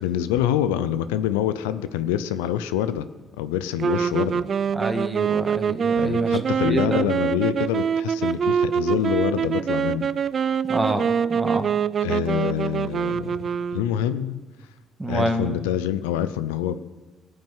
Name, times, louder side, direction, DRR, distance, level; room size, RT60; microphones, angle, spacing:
voice 1, 0.0-3.1 3.4-4.4 6.0-10.1 12.0-13.3 13.7-14.4 15.1-16.8, left 11 dB, 90° left, 13 dB, 0.5 m, -26 dB
sound 1, 3.8-14.2, right 7 dB, 55° right, 0.5 m, -24 dB
voice 2, 4.8-6.4 6.7-7.1 10.7-11.7 15.0-15.5, right 1 dB, 20° right, 6 dB, 2.1 m, -27 dB
17.5 x 6.5 x 9.1 m, 1.2 s
hypercardioid pair, 55°, 0 cm